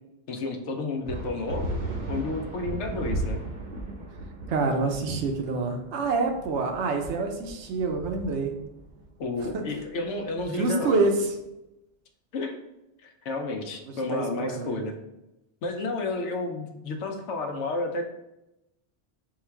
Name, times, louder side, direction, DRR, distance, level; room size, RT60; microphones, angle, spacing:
voice 1, 0.3-1.7 2.1-3.4 9.2-11.0 12.3-12.6 13.0-14.9 15.6-18.0, left 2 dB, 75° left, 4 dB, 0.9 m, -31 dB
sound 1, 1.1-11.0, right 1 dB, 50° right, 0.7 m, -36 dB
voice 2, 4.5-8.5 9.5-9.6 10.5-11.3 14.1-14.8, right 3 dB, 75° right, 4 dB, 0.9 m, -27 dB
3.7 x 2.3 x 4.5 m, 0.92 s
omnidirectional pair, 1.2 m